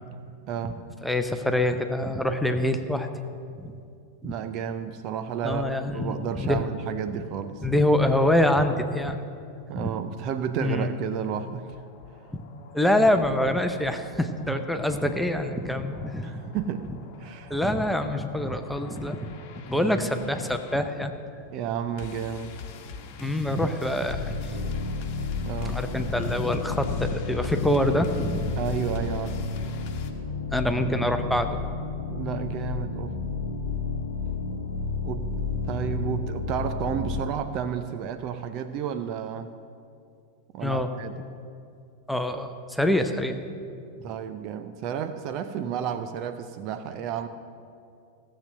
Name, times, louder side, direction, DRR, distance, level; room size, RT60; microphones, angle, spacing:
voice 1, 0.4-0.8 3.7-3.8 4.2-7.6 9.7-11.7 14.5-14.6 16.2-17.8 19.8-20.1 21.5-22.5 25.4-25.8 28.6-29.4 32.1-33.2 35.0-39.5 40.5-41.3 44.0-47.3, right 8 dB, 40° right, 10 dB, 0.6 m, -32 dB
voice 2, 1.0-3.1 3.6-3.7 4.2-4.3 5.4-6.7 7.6-9.2 9.7-9.9 10.6-11.0 12.7-16.3 17.5-19.3 19.7-21.1 23.2-24.6 25.7-28.6 30.5-31.6 40.6-40.9 42.1-43.4, left 1 dB, ahead, 6 dB, 0.8 m, -25 dB
sound 1, 11.4-30.1, left 5 dB, 45° left, 1.2 m, -44 dB
sound 2, 24.1-37.2, left 4 dB, 70° left, 0.9 m, -31 dB
16.5 x 7.6 x 6.5 m, 2.5 s
figure-of-eight pair, 90°, 0 cm